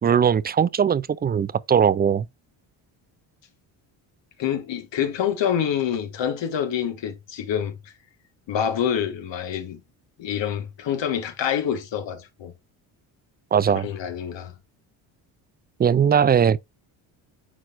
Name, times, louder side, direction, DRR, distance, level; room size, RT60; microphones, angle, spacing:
voice 1, 0.0-2.3 13.5-13.9 15.8-16.6, right 7 dB, 25° right, 0.3 m, -19 dB
voice 2, 4.4-7.9 8.5-9.8 10.2-12.5 13.8-14.5, left 9 dB, 60° left, 1.6 m, -26 dB
9.3 x 4.2 x 2.5 m
supercardioid pair, 70°, 50 cm